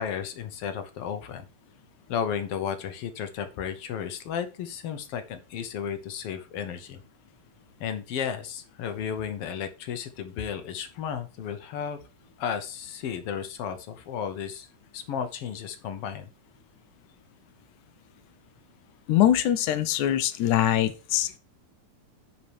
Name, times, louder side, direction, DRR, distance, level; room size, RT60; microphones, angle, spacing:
voice 1, 0.0-1.4 2.1-7.0 7.8-12.0 12.4-14.7 14.9-16.3, left 8 dB, 70° left, 8 dB, 1.5 m, -33 dB
voice 2, 19.1-21.4, left 12 dB, 85° left, 13 dB, 2.2 m, -23 dB
10.0 x 4.1 x 4.8 m, 0.33 s
omnidirectional pair, 3.4 m